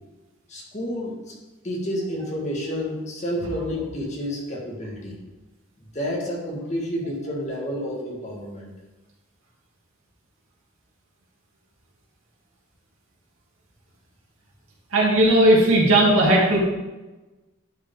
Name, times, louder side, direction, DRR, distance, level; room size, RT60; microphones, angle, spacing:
voice 1, 0.5-1.1 1.6-5.2 5.9-8.7, equal, 35° left, -2 dB, 1.8 m, -29 dB
voice 2, 14.9-16.6, right 1 dB, 85° right, -4 dB, 2.5 m, -16 dB
11.0 x 5.1 x 3.7 m, 1.1 s
head